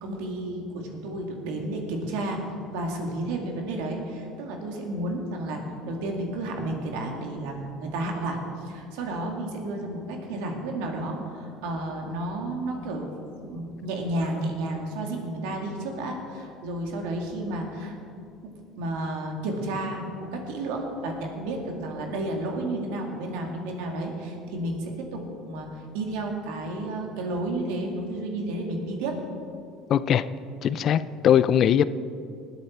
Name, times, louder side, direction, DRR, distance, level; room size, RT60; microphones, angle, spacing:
voice 1, 0.0-2.4 2.7-13.1 13.4-17.9 18.4-18.5 18.8-29.2, right 1 dB, 80° right, 1 dB, 2.3 m, -32 dB
voice 2, 29.9-30.2 30.6-31.8, left 9 dB, 50° left, 15 dB, 0.4 m, -20 dB
19.5 x 8.2 x 4.5 m, 2.4 s
supercardioid pair, 95°, 0 cm